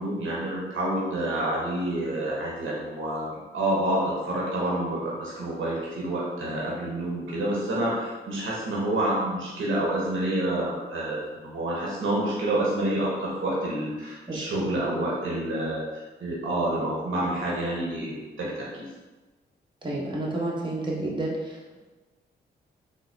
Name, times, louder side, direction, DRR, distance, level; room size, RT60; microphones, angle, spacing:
voice 1, 0.0-18.8, right 1 dB, 70° right, -5 dB, 1.0 m, -28 dB
voice 2, 14.3-14.6 19.8-21.8, right 2 dB, 20° right, -4 dB, 1.0 m, -30 dB
3.6 x 2.1 x 3.3 m, 1.2 s
hypercardioid pair, 40°, 21 cm